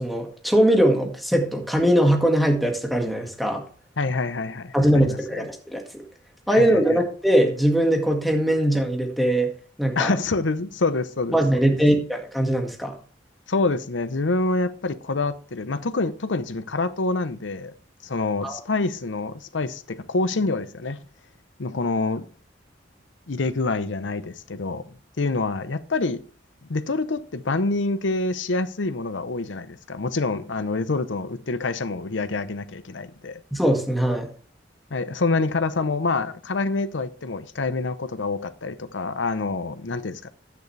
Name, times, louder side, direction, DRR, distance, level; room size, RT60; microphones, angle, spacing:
voice 1, 0.0-3.6 4.7-6.0 6.5-9.5 9.8-10.1 11.3-13.0 18.4-18.6 33.5-34.3, right 1 dB, ahead, 1.8 m, -21 dB
voice 2, 4.0-4.8 5.0-5.2 6.5-7.0 10.0-11.4 13.5-17.7 18.0-21.0 21.6-22.3 23.3-24.9 25.2-26.2 26.7-33.4 34.9-40.3, left 3 dB, 90° left, 0.8 m, -26 dB
10.5 x 9.2 x 3.3 m
head